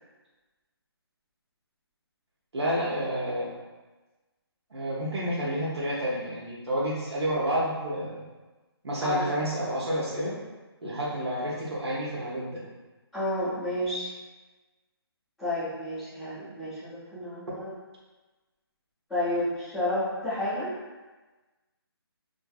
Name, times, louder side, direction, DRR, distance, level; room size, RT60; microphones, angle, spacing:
voice 1, 2.5-3.5 4.7-8.2 8.8-10.3 10.8-12.6, equal, 80° right, -6 dB, 0.8 m, -29 dB
voice 2, 13.1-14.1 15.4-17.7 19.1-20.7, left 1 dB, ahead, -22 dB, 0.5 m, -30 dB
2.5 x 2.5 x 2.3 m, 1.2 s
hypercardioid pair, 180°, 14 cm